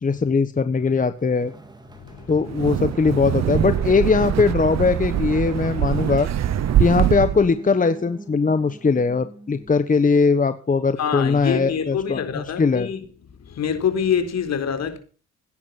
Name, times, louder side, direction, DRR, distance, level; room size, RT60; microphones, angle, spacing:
voice 1, 0.0-1.5 2.3-6.3 6.8-12.9, left 4 dB, 25° left, 1.2 m, -20 dB
sound 1, 0.7-9.9, right 1 dB, 15° right, 3.7 m, -42 dB
voice 2, 2.0-2.5 5.4-5.5 6.7-6.8 11.0-13.1 13.4-15.0, left 7 dB, 60° left, 4.1 m, -26 dB
Wind, 2.4-7.5, right 11 dB, 60° right, 1.0 m, -23 dB
17.0 x 10.0 x 6.0 m
cardioid pair, 90°, 30 cm